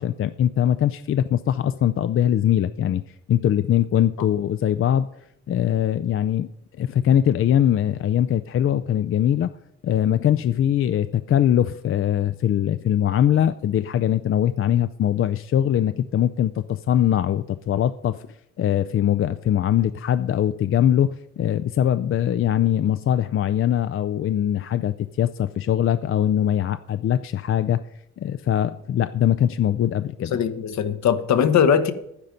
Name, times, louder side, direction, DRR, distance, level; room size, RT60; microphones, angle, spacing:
voice 1, 0.0-3.0 3.3-5.1 5.5-6.5 6.8-9.5 9.8-18.2 18.6-27.8 28.2-30.3, left 10 dB, 45° left, 0.5 m, -21 dB
voice 2, 30.3-31.9, left 8 dB, 65° left, 1.1 m, -20 dB
11.0 x 9.8 x 5.2 m
cardioid pair, 90°, 30 cm